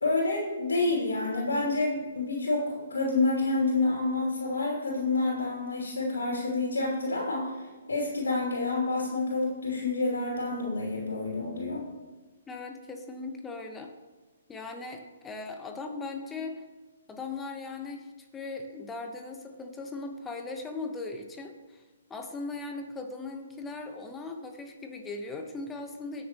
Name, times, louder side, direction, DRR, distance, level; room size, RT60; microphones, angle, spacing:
voice 1, 0.0-7.5 7.9-11.8, left 3 dB, 85° left, -3 dB, 2.8 m, -28 dB
voice 2, 12.5-13.9 14.5-16.6 17.1-18.1 18.3-21.8 22.1-26.3, left 3 dB, 15° left, 4 dB, 1.1 m, -38 dB
20.0 x 6.8 x 3.0 m, 1.2 s
hypercardioid pair, 135°, 0 cm